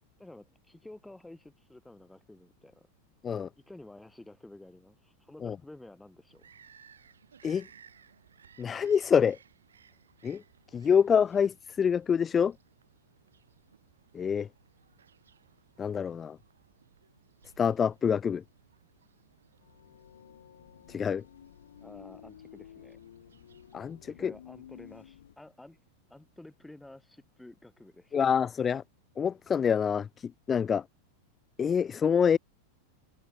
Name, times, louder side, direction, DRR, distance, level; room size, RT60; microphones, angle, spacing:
voice 1, 0.2-2.9 3.6-6.5 21.8-23.0 24.0-25.8 26.1-28.2, left 1 dB, 5° left, 1.4 m, -51 dB
Bird vocalization bird call bird song, 6.3-24.0, right 7 dB, 70° right, 6.2 m, -61 dB
voice 2, 8.6-9.4 10.2-10.4 10.7-12.5 14.1-14.5 15.8-16.4 17.6-18.4 20.9-21.2 23.7-24.3 28.1-28.8 29.2-30.8 31.6-32.4, left 7 dB, 20° left, 0.3 m, -26 dB
sound 1, 19.6-25.3, left 10 dB, 65° left, 1.4 m, -52 dB
figure-of-eight pair, 90°, 0 cm